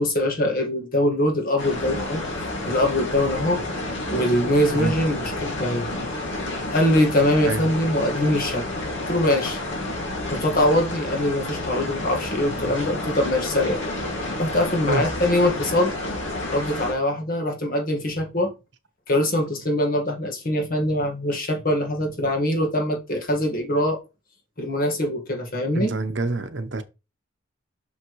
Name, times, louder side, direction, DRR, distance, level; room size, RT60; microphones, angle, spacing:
voice 1, 0.0-2.2 2.6-3.6 4.1-5.9 6.7-9.6 10.3-13.8 14.4-15.9 16.5-18.5 19.1-24.0 24.6-25.9, left 1 dB, 45° left, 1.7 m, -23 dB
sound 1, 1.6-16.9, left 1 dB, 65° left, 2.3 m, -30 dB
voice 2, 25.7-26.8, right 3 dB, 60° right, 0.8 m, -26 dB
6.3 x 5.8 x 3.1 m
head